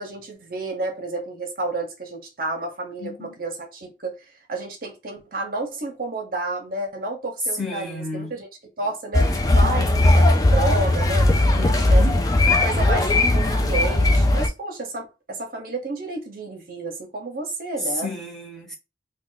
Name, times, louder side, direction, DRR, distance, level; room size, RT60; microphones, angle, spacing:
voice 1, 0.0-4.2 4.5-8.5 8.8-12.1 12.6-18.1, right 2 dB, 50° right, 0.7 m, -31 dB
voice 2, 3.0-3.3 7.6-8.3 11.5-12.2 17.8-18.7, left 1 dB, 5° left, 0.9 m, -32 dB
sound 1, 9.1-14.5, left 2 dB, 20° left, 0.3 m, -18 dB
2.4 x 2.2 x 3.8 m
head